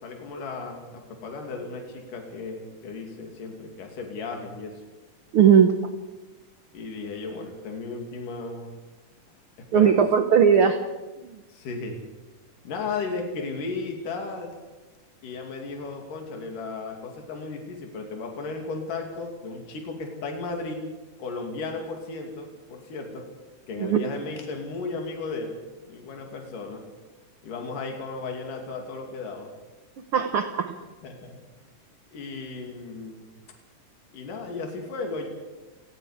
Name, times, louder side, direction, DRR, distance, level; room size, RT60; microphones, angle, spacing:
voice 1, 0.0-4.7 6.7-8.8 9.7-10.0 11.5-12.0 12.6-14.5 15.2-20.8 21.2-23.3 23.7-25.6 25.9-26.8 27.4-29.5 30.8-31.4 32.1-33.3 34.1-35.3, left 3 dB, 75° left, 2 dB, 4.2 m, -35 dB
voice 2, 5.3-5.7 9.7-10.8 23.8-24.0 30.1-30.7, right 7 dB, 65° right, 7 dB, 1.4 m, -18 dB
29.5 x 19.0 x 5.0 m, 1.2 s
omnidirectional pair, 3.8 m